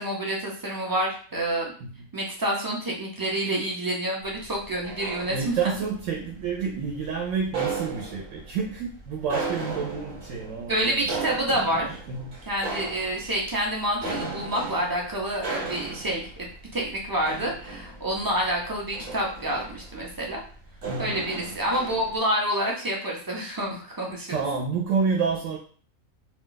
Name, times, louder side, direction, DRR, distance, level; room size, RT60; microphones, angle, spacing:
voice 1, 0.0-1.7 2.1-5.7 10.7-12.0 12.5-20.4 21.0-24.4, right 1 dB, 30° right, -2 dB, 0.4 m, -28 dB
sound 1, 4.2-22.2, right 4 dB, 45° right, 1.0 m, -36 dB
voice 2, 5.3-11.1 12.1-12.3 20.8-21.2 24.3-25.6, right 5 dB, 70° right, 0 dB, 1.0 m, -29 dB
2.4 x 2.3 x 3.8 m, 0.44 s
omnidirectional pair, 1.4 m